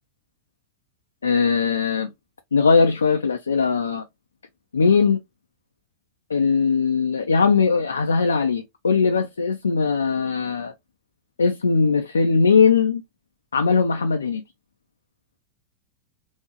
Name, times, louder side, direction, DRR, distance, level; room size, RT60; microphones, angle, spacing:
voice 1, 1.2-2.1 2.5-4.0 4.7-5.2 6.3-10.7 11.4-13.0 13.5-14.4, left 5 dB, 70° left, 0.4 m, -20 dB
3.6 x 2.0 x 3.0 m
figure-of-eight pair, 90°, 0 cm